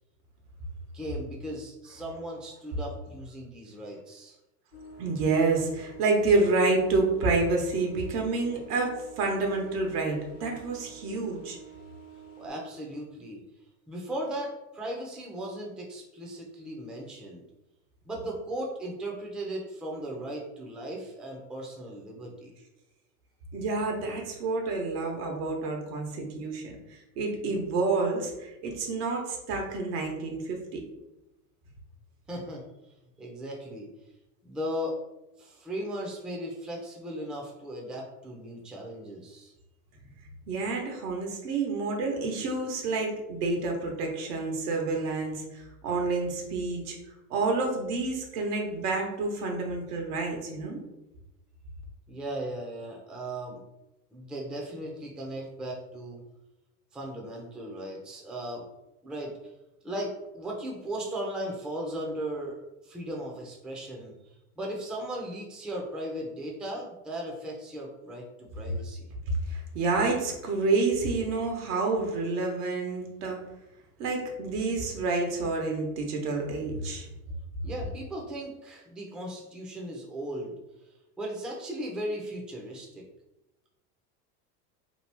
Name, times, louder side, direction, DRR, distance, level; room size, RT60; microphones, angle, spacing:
voice 1, 0.9-4.4 12.4-13.4 13.9-17.4 18.0-22.5 32.3-32.6 33.2-33.9 34.4-35.0 35.4-39.5 52.1-53.6 54.1-56.2 56.9-58.6 59.0-59.3 59.8-62.6 62.8-64.1 64.6-69.1 77.6-80.6 81.2-83.0, right 1 dB, ahead, -1 dB, 0.4 m, -37 dB
sound 1, 4.7-12.5, right 7 dB, 70° left, 0.9 m, -49 dB
voice 2, 5.0-11.6 23.5-26.8 27.2-30.8 40.5-47.0 47.3-50.8 69.5-73.4 74.0-77.1, right 3 dB, 75° right, 1 dB, 1.0 m, -28 dB
2.9 x 2.4 x 3.3 m, 0.96 s
hypercardioid pair, 95°, 47 cm